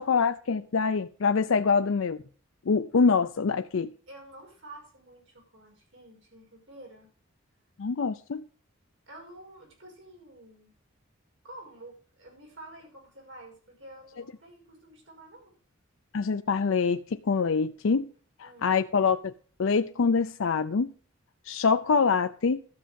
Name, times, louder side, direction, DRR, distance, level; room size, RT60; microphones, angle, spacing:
voice 1, 0.0-2.2 2.7-3.9 7.8-8.4 16.1-18.1 18.4-19.3 19.6-20.9 21.5-22.6, left 5 dB, 70° left, 0.5 m, -25 dB
voice 2, 4.1-7.1 9.1-10.7 11.4-15.5 18.4-18.7, right 1 dB, 60° right, 5.8 m, -49 dB
12.5 x 7.5 x 5.2 m
head